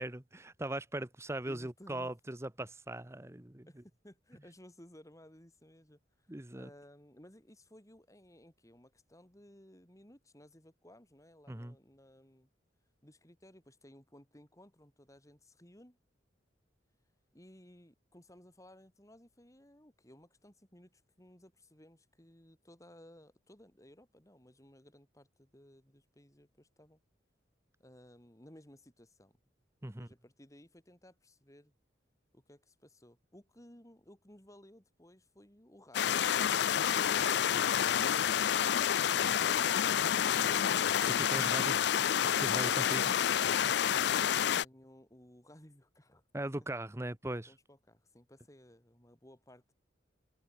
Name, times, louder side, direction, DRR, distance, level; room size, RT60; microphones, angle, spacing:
voice 1, 0.0-3.7 6.3-6.7 11.5-11.8 29.8-30.1 41.1-41.8 42.4-43.1 46.3-47.5, right 1 dB, 15° right, 1.0 m, -39 dB
voice 2, 1.4-2.1 3.7-12.5 13.0-16.0 17.3-27.0 27.8-29.4 29.8-31.7 32.3-39.7 44.5-46.2 47.5-49.6, left 1 dB, 15° left, 3.9 m, -58 dB
sound 1, 35.9-44.6, left 9 dB, 60° left, 0.4 m, -29 dB
head